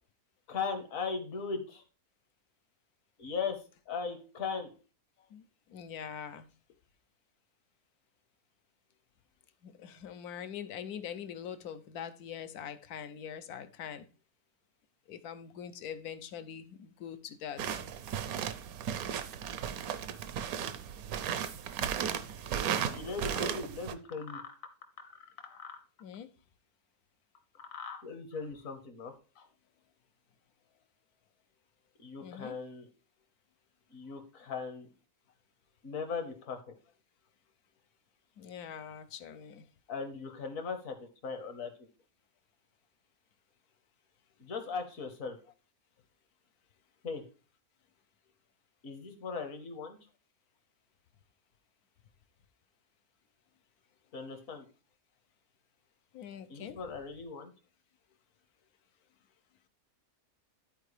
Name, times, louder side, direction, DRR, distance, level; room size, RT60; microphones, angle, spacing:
voice 1, 0.5-1.8 3.2-4.7 22.9-24.4 25.4-25.8 27.7-29.4 32.0-32.9 33.9-34.9 35.8-36.7 39.9-41.7 44.4-45.4 47.0-47.2 48.8-50.0 54.1-54.6 56.5-57.5, left 5 dB, 65° left, 1.6 m, -38 dB
voice 2, 5.3-6.5 9.6-14.1 15.1-17.8 26.0-26.3 32.2-32.6 38.4-39.7 56.1-56.8, left 8 dB, 80° left, 1.2 m, -43 dB
sound 1, 17.6-24.0, right 8 dB, 75° right, 1.1 m, -35 dB
12.5 x 4.5 x 3.3 m
omnidirectional pair, 1.6 m